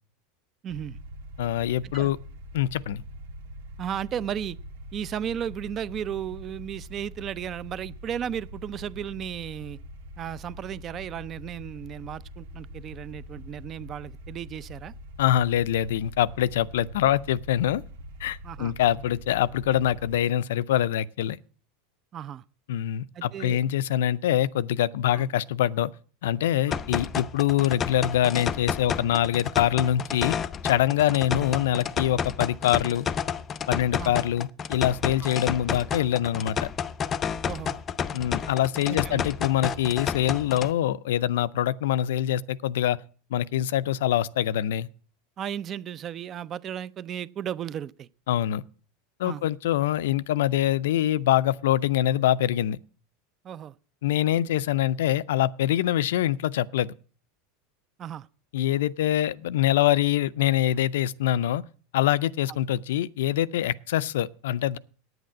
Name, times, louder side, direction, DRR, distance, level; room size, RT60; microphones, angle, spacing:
voice 1, 0.6-1.0 1.9-2.1 3.8-4.6 4.9-9.8 10.2-14.9 18.4-18.7 22.1-22.4 23.1-23.6 25.1-25.3 26.7-26.8 31.1-31.2 34.0-34.1 35.2-35.3 37.4-37.8 38.9-39.2 45.4-48.1 49.2-49.4 53.4-53.8 58.0-58.3, right 9 dB, 30° right, 0.4 m, -34 dB
sound 1, 0.7-20.2, equal, 80° right, 1.6 m, -43 dB
voice 2, 1.4-2.2 2.5-3.0 15.2-17.8 18.2-21.4 22.7-25.9 26.2-30.3 30.6-33.1 33.7-36.7 38.1-43.0 43.3-44.9 48.3-48.6 49.2-52.8 54.0-56.9 58.5-61.6 61.9-64.8, left 12 dB, 85° left, 0.5 m, -24 dB
sound 2, 26.7-40.7, left 7 dB, 30° left, 0.5 m, -31 dB
9.4 x 8.0 x 7.3 m
supercardioid pair, 135°, 0 cm